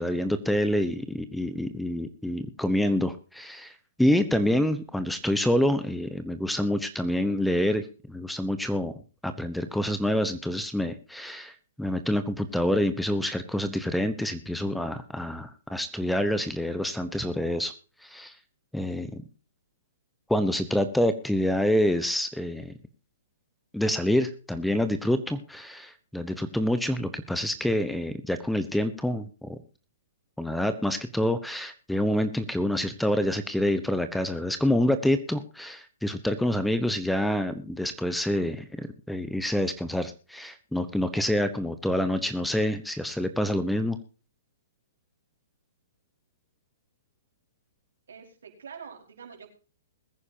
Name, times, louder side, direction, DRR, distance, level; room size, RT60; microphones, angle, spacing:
voice 1, 0.0-3.7 4.0-8.9 9.2-17.7 18.0-18.3 18.7-19.2 20.3-22.7 23.7-29.6 30.4-44.0, left 1 dB, ahead, 11 dB, 1.0 m, -27 dB
voice 2, 48.1-49.5, right 6 dB, 75° right, 2 dB, 4.9 m, -45 dB
21.5 x 9.8 x 2.8 m, 0.35 s
hypercardioid pair, 135°, 0 cm